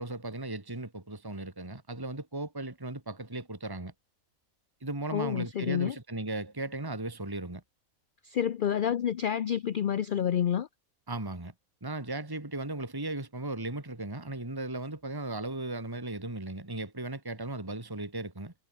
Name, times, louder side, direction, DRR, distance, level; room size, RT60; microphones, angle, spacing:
voice 1, 0.0-3.9 4.8-7.6 11.1-11.5 11.8-18.5, right 2 dB, 15° right, 2.3 m, -36 dB
voice 2, 5.1-5.9 8.2-10.7, left 9 dB, 60° left, 0.5 m, -29 dB
omnidirectional pair, 1.5 m